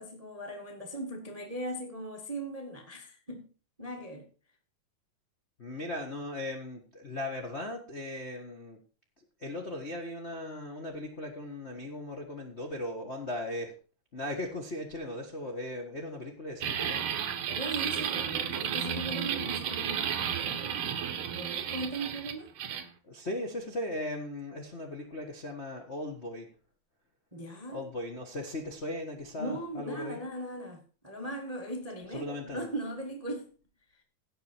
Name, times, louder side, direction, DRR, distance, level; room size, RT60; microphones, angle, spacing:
voice 1, 0.0-3.5 3.8-4.3 17.5-20.9 21.3-22.5 27.3-27.8 29.4-33.5, right 1 dB, 40° right, 0.5 m, -39 dB
voice 2, 5.6-8.8 9.4-13.7 14.1-17.0 23.1-26.5 27.7-30.2 32.1-32.6, left 1 dB, 70° left, 0.6 m, -38 dB
sound 1, 16.6-22.9, right 8 dB, 75° right, 1.2 m, -33 dB
16.5 x 6.7 x 4.5 m
omnidirectional pair, 4.0 m